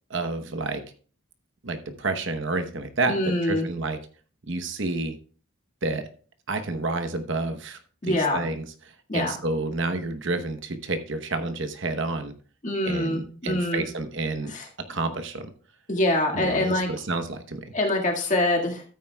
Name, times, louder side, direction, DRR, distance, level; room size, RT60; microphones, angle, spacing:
voice 1, 0.1-0.8 1.6-4.0 4.5-5.2 5.8-6.1 6.5-7.8 8.0-8.6 9.1-12.3 12.8-14.5 14.9-15.5 16.3-17.6, right 3 dB, 55° right, 8 dB, 1.0 m, -29 dB
voice 2, 3.1-3.7 8.0-8.4 9.1-9.4 12.6-13.8 14.5-14.7 15.9-16.9 17.7-18.8, left 1 dB, 35° left, 1 dB, 1.9 m, -24 dB
13.0 x 9.3 x 2.3 m, 0.40 s
head